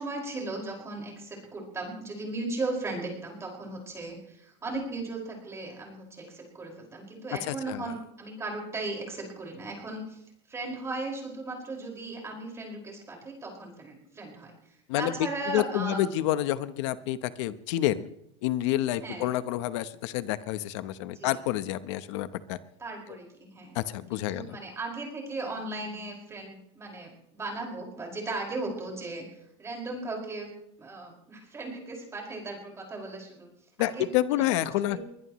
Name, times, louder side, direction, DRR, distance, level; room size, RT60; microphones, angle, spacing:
voice 1, 0.0-10.2 10.5-16.1 19.0-19.3 21.1-21.4 22.8-23.8 24.1-30.5 30.8-33.5 33.8-34.4 34.9-35.0, right 2 dB, 20° right, 0 dB, 5.2 m, -37 dB
voice 2, 7.5-7.8 14.9-15.1 15.5-18.1 18.4-22.6 23.7-24.6 33.8-35.0, left 13 dB, 80° left, 13 dB, 0.9 m, -28 dB
22.5 x 20.5 x 3.1 m, 0.75 s
supercardioid pair, 145°, 15 cm